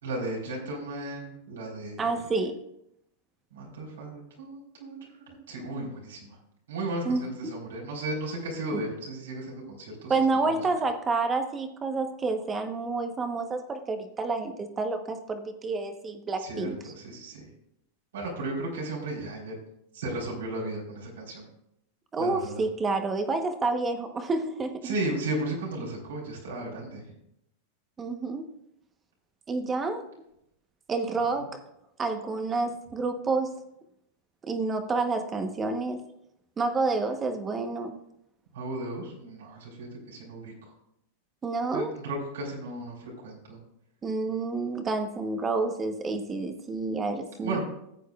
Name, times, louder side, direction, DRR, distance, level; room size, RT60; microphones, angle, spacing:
voice 1, 0.0-2.2 3.5-6.4 6.7-10.6 16.4-17.5 18.1-19.5 19.9-21.5 22.2-22.6 24.8-27.1 31.2-31.5 38.5-40.7 41.7-43.6 47.4-47.6, right 2 dB, 90° right, -3 dB, 3.9 m, -35 dB
voice 2, 2.0-2.6 7.0-7.2 10.1-16.9 22.1-24.9 28.0-28.5 29.5-30.0 30.9-31.6 32.0-33.5 34.5-36.0 36.6-38.0 41.4-41.9 44.0-47.6, right 3 dB, 20° right, 7 dB, 1.0 m, -29 dB
15.0 x 8.3 x 2.4 m, 0.79 s
hypercardioid pair, 130°, 0 cm